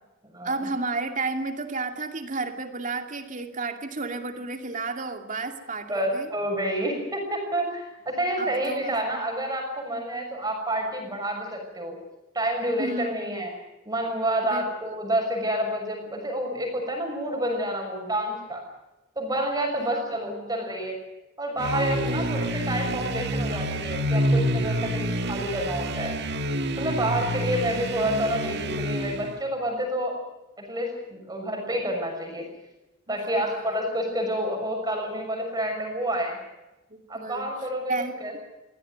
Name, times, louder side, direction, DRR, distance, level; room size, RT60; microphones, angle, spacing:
voice 1, 0.4-6.3 8.4-9.2 12.8-13.4 14.4-14.7 19.8-20.6 21.9-22.3 27.1-27.5 33.1-33.8 36.9-37.5 37.9-38.4, right 3 dB, 40° right, 6 dB, 2.5 m, -33 dB
voice 2, 5.9-12.0 12.3-13.5 13.9-18.6 19.2-21.0 21.4-26.2 26.8-30.2 30.6-32.5 33.1-36.4 37.1-38.4, right 1 dB, 20° right, 2 dB, 6.2 m, -29 dB
sound 1, 21.6-29.4, right 1 dB, 55° right, 1.8 m, -27 dB
23.5 x 16.5 x 9.4 m, 1.0 s
head